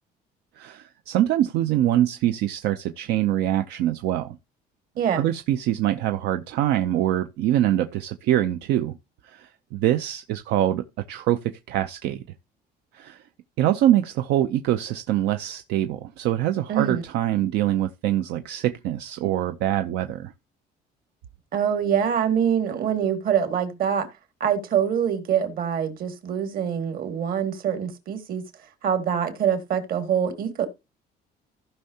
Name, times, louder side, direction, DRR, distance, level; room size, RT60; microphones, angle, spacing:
voice 1, 0.6-4.4 5.2-9.0 9.2-11.4 11.7-12.2 12.9-13.2 13.6-20.3, right 12 dB, 85° right, 0.6 m, -24 dB
voice 2, 5.0-5.3 16.7-17.0 21.5-24.1 24.4-28.4 28.8-30.7, right 8 dB, 60° right, 2.0 m, -24 dB
15.0 x 5.6 x 2.8 m
cardioid pair, 110°, 17 cm